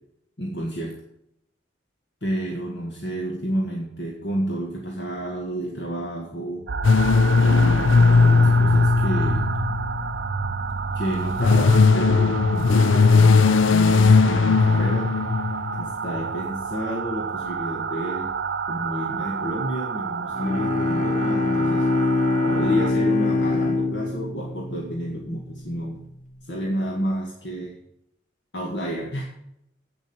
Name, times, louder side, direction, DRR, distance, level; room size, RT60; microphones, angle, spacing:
voice 1, 0.4-1.0 2.2-6.7 7.4-9.5 11.0-15.1 15.7-18.4 18.7-21.9 22.4-26.0 26.4-27.8 28.5-29.2, equal, 60° left, -1 dB, 1.8 m, -30 dB
sound 1, 6.7-22.9, right 5 dB, 60° right, 0.5 m, -30 dB
sound 2, 6.8-10.2 11.1-15.9, left 4 dB, 80° left, 0.5 m, -18 dB
Bowed string instrument, 20.3-25.4, left 2 dB, 40° left, 1.2 m, -23 dB
8.5 x 7.8 x 8.8 m, 0.78 s
head